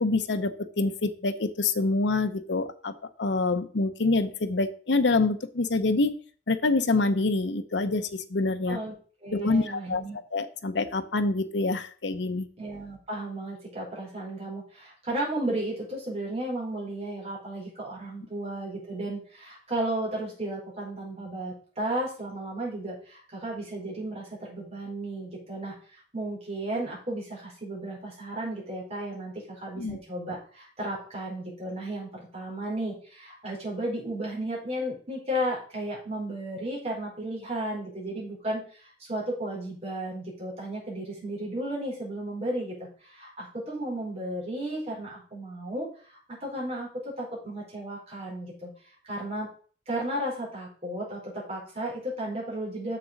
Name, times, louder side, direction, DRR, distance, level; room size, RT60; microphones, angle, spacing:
voice 1, 0.0-2.9 3.2-6.1 6.5-8.8 9.3-10.0 10.3-12.5 29.8-30.0, left 3 dB, 80° left, 9 dB, 0.8 m, -26 dB
voice 2, 9.2-10.2 12.6-48.7 49.0-49.5 49.9-53.0, right 1 dB, 35° right, -4 dB, 4.7 m, -34 dB
7.0 x 6.7 x 5.2 m, 0.43 s
head